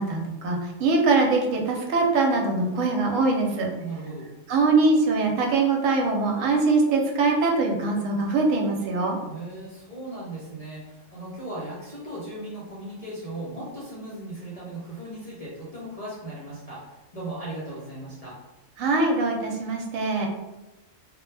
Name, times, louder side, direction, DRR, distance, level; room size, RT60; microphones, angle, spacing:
voice 1, 0.0-3.7 4.5-9.2 18.8-20.3, right 3 dB, 85° right, 1 dB, 1.0 m, -22 dB
voice 2, 3.8-4.3 9.2-18.4, right 2 dB, 45° left, -7 dB, 0.5 m, -37 dB
2.1 x 2.1 x 3.1 m, 1.0 s
omnidirectional pair, 1.3 m